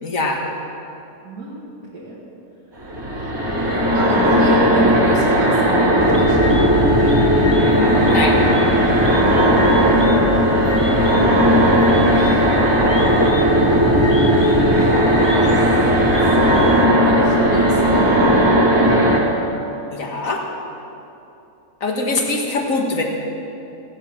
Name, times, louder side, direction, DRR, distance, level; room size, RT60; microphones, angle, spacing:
voice 1, 0.0-0.4 7.0-7.1 7.7-8.4 19.9-20.4 21.8-23.0, left 2 dB, 60° left, 1 dB, 2.1 m, -22 dB
voice 2, 1.2-1.6 1.9-2.2 3.9-6.6 9.4-10.1 12.1-13.5 14.1-15.6 15.9-18.5, right 1 dB, 80° right, -8 dB, 2.6 m, -32 dB
sound 1, 2.8-19.2, equal, 65° right, 3.5 m, -16 dB
sound 2, 6.0-16.9, left 5 dB, 25° left, 0.7 m, -27 dB
16.5 x 8.2 x 7.6 m, 2.9 s
omnidirectional pair, 1.6 m